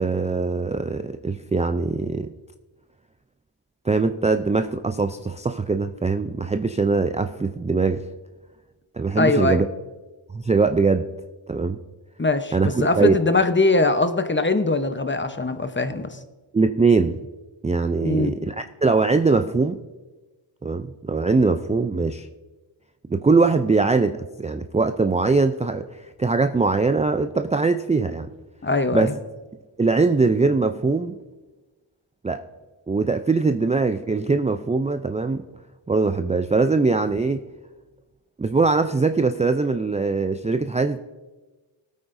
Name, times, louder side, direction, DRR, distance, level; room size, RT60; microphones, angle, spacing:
voice 1, 0.0-2.3 3.8-8.0 8.9-9.7 10.3-11.1 11.5-11.8 12.5-13.2 16.5-17.2 17.6-19.8 20.6-22.3 23.1-28.3 28.9-29.1 29.8-31.2 32.2-32.4 32.9-35.4 35.9-37.4 38.4-41.0, right 4 dB, 15° right, 8 dB, 0.4 m, -21 dB
voice 2, 9.2-9.6 12.2-16.2 18.0-18.3 28.6-29.1, left 3 dB, 25° left, 9 dB, 0.9 m, -21 dB
19.0 x 8.7 x 2.6 m, 1.2 s
cardioid pair, 55°, 48 cm